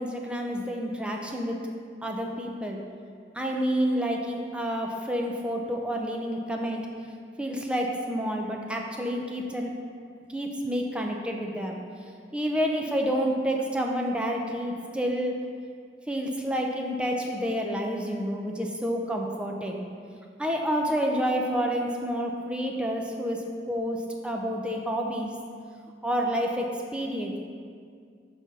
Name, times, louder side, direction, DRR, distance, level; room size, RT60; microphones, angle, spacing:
voice 1, 0.0-1.6 2.0-2.8 3.3-6.8 7.4-9.7 10.3-11.8 12.3-15.4 16.1-19.9 20.4-25.3 26.0-27.4, equal, 5° right, 0 dB, 0.5 m, -29 dB
5.9 x 4.2 x 6.0 m, 2.2 s
head